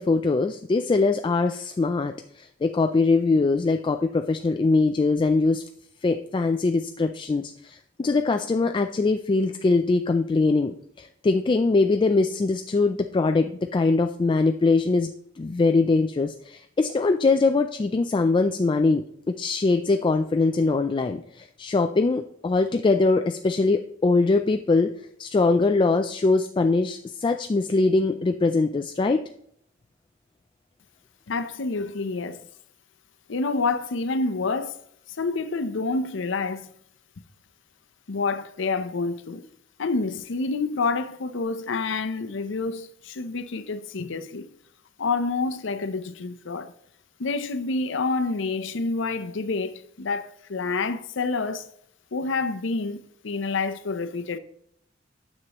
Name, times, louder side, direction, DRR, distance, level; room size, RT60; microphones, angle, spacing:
voice 1, 0.0-5.6 6.0-15.1 15.4-24.9 25.2-29.2, left 3 dB, 25° left, 0.3 m, -22 dB
voice 2, 31.3-32.5 33.3-34.8 35.2-36.7 38.1-39.5 39.8-44.5 45.0-46.7 47.2-51.7 52.1-54.4, left 3 dB, 70° left, 0.6 m, -28 dB
9.5 x 7.5 x 3.0 m
head